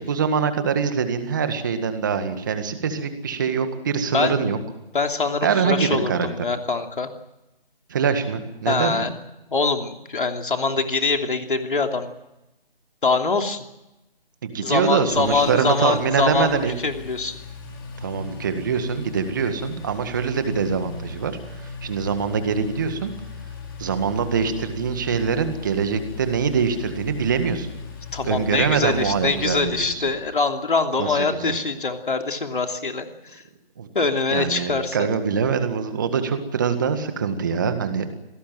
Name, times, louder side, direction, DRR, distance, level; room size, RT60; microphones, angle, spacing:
voice 1, 0.0-4.6 5.4-6.3 7.9-9.1 14.4-16.7 18.0-21.3 21.6-23.1 23.8-27.8 28.2-30.0 31.0-31.6 33.8-33.9 34.3-38.1, right 6 dB, 20° right, 9 dB, 1.8 m, -24 dB
voice 2, 4.1-4.4 4.9-7.1 8.6-9.1 9.5-12.1 13.0-13.6 14.6-17.4 28.1-33.4 33.9-35.1, left 4 dB, 60° left, 5 dB, 2.9 m, -24 dB
Engine, 14.7-30.4, left 4 dB, 25° left, 4.7 m, -38 dB
26.5 x 18.5 x 7.7 m, 0.94 s
figure-of-eight pair, 170°, 30 cm